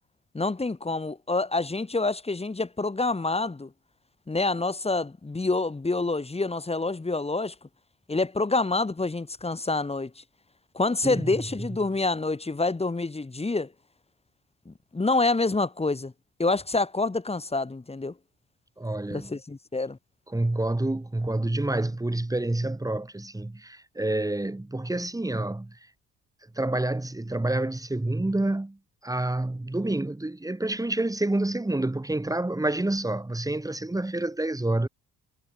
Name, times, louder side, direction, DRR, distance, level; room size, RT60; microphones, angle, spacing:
voice 1, 0.3-3.7 4.3-7.5 8.1-10.2 10.7-13.7 14.7-16.1 16.4-18.1 19.1-20.0, left 3 dB, 20° left, 4.0 m, -27 dB
voice 2, 18.8-19.3 20.3-25.8 26.6-28.8 29.0-34.9, right 2 dB, 10° right, 3.6 m, -28 dB
cardioid pair, 90°, 30 cm